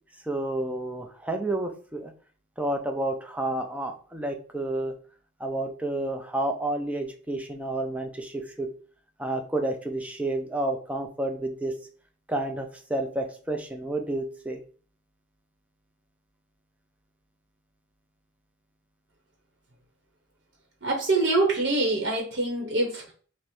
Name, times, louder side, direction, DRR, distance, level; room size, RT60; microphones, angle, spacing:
voice 1, 0.2-2.1 2.6-4.9 5.4-8.7 9.2-11.7 12.3-14.6, right 1 dB, 5° right, 3 dB, 0.4 m, -30 dB
voice 2, 20.8-23.1, right 2 dB, 60° right, 0 dB, 0.9 m, -25 dB
5.3 x 2.1 x 3.0 m, 0.42 s
head